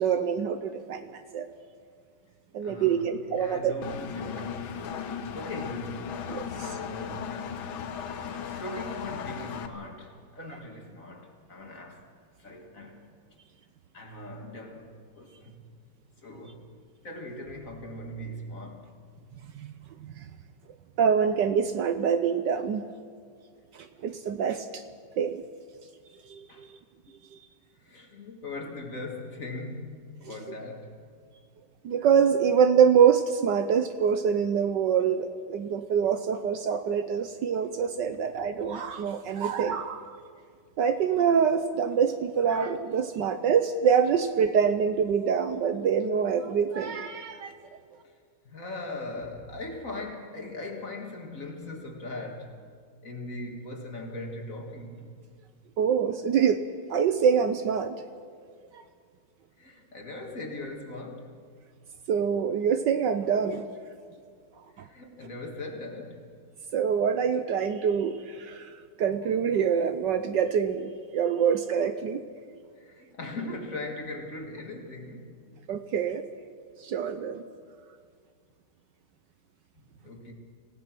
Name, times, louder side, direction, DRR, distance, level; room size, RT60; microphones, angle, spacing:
voice 1, 0.0-1.5 2.5-3.7 6.3-6.7 19.5-19.7 20.0-20.2 21.0-22.8 23.7-24.8 25.2-25.4 26.3-26.7 31.8-40.0 40.8-47.5 55.8-56.6 56.9-57.9 58.7-58.8 62.1-63.7 66.7-72.2 75.7-76.2 76.8-77.4, right 7 dB, 65° right, 1.3 m, -25 dB
voice 2, 2.6-6.1 6.5-7.4 8.6-12.1 12.4-13.1 13.9-15.6 16.2-16.7 17.0-18.9 26.5-26.7 27.8-31.0 37.7-37.9 48.0-48.1 48.4-52.6 53.0-55.2 59.6-61.3 64.7-66.3 72.8-75.6 79.7-80.3, left 2 dB, 40° left, 2.2 m, -40 dB
Engine, 3.8-9.7, left 7 dB, 75° left, 1.9 m, -36 dB
26.0 x 17.0 x 6.0 m
omnidirectional pair, 2.3 m